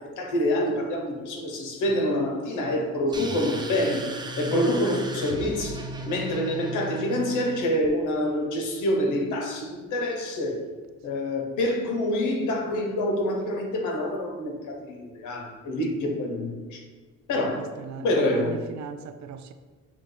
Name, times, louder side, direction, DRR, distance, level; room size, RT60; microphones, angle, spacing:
voice 1, 0.0-10.6 11.0-16.8 17.3-17.7 18.0-18.6, left 1 dB, 85° left, 1.0 m, -27 dB
sound 1, 3.1-7.9, right 1 dB, 15° right, 0.5 m, -36 dB
voice 2, 17.6-19.5, right 6 dB, 70° right, 0.5 m, -40 dB
7.0 x 2.3 x 3.2 m
cardioid pair, 90°, 30 cm